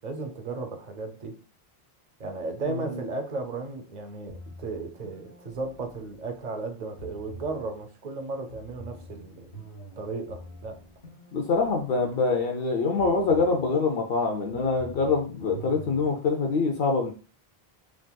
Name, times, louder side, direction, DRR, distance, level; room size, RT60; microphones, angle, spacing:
voice 1, 0.0-1.4 2.2-9.5 10.0-10.8, right 3 dB, 55° right, 6 dB, 0.6 m, -35 dB
sound 1, 4.3-6.5 7.0-7.8 8.5-12.6 13.0-13.8 14.5-16.3, right 1 dB, 90° left, 1.8 m, -46 dB
voice 2, 11.3-17.1, left 4 dB, 70° left, 3 dB, 0.8 m, -25 dB
3.6 x 2.5 x 2.2 m, 0.36 s
omnidirectional pair, 1.0 m